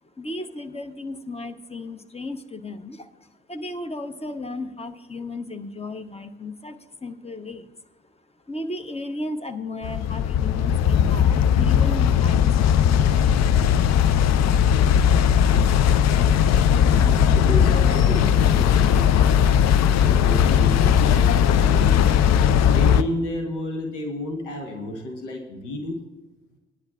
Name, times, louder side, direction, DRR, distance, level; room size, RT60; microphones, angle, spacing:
voice 1, 0.2-7.7 8.0-8.1 8.5-13.1, left 2 dB, 15° left, 7 dB, 0.9 m, -35 dB
sound 1, 9.8-23.0, left 8 dB, 50° left, 0.6 m, -18 dB
voice 2, 16.8-19.5 20.0-22.1 22.7-26.0, left 1 dB, 85° left, 2 dB, 1.1 m, -31 dB
18.0 x 10.0 x 2.4 m, 1.2 s
figure-of-eight pair, 45°, 35 cm